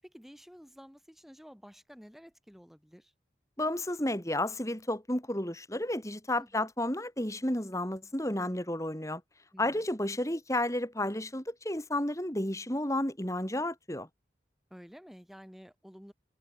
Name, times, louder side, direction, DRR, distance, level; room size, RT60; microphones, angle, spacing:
voice 1, 0.0-3.1 6.4-6.7 9.5-9.9 14.7-16.1, equal, ahead, 7.5 m, -52 dB
voice 2, 3.6-9.2 9.6-14.1, left 1 dB, 15° left, 3.8 m, -32 dB
head